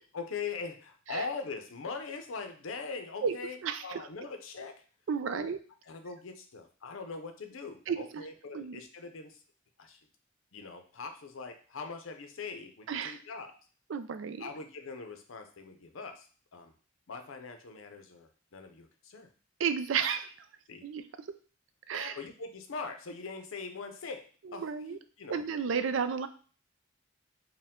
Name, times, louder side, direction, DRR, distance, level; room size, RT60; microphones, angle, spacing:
voice 1, 0.1-3.6 3.8-4.8 5.3-5.5 5.9-9.4 9.8-10.0 10.5-13.6 14.4-16.3 16.5-16.7 17.1-19.3 20.7-20.8 21.9-24.3 24.5-25.4, left 4 dB, 90° left, 7 dB, 0.6 m, -41 dB
voice 2, 3.2-4.0 5.1-5.6 7.9-8.2 8.5-8.8 12.9-13.2 13.9-14.4 19.6-20.3 20.8-21.0 21.9-22.2 24.4-25.0 25.3-26.3, right 6 dB, 70° right, 11 dB, 0.4 m, -32 dB
4.5 x 2.2 x 3.6 m, 0.39 s
head